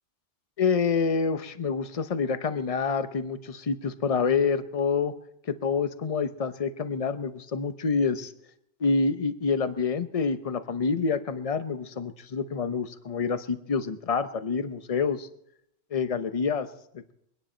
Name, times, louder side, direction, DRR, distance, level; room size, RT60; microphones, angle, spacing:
voice 1, 0.6-5.1 5.5-8.3 8.8-15.3 15.9-16.7 16.9-17.1, left 5 dB, 35° left, 10 dB, 0.8 m, -27 dB
24.0 x 10.0 x 4.3 m, 0.76 s
omnidirectional pair, 1.2 m